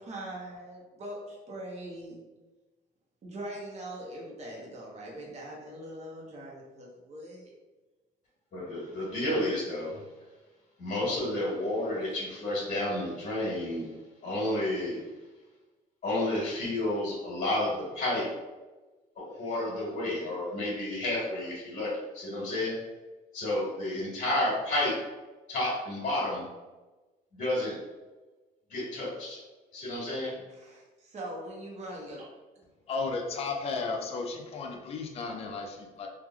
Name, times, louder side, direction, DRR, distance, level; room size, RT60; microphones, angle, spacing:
voice 1, 0.0-2.2 3.2-7.5 12.0-12.1 30.5-32.3, right 1 dB, 40° right, -3 dB, 0.9 m, -42 dB
voice 2, 8.5-10.0 10.8-13.9 14.2-15.0 16.0-18.3 19.3-21.9 22.1-22.7 23.3-24.9 25.5-26.4 27.3-27.7 28.7-29.4 29.7-30.3, left 1 dB, 50° left, -7 dB, 1.3 m, -31 dB
voice 3, 32.9-36.1, left 4 dB, 35° left, 2 dB, 0.4 m, -34 dB
3.2 x 2.4 x 2.3 m, 1.2 s
cardioid pair, 110°, 17 cm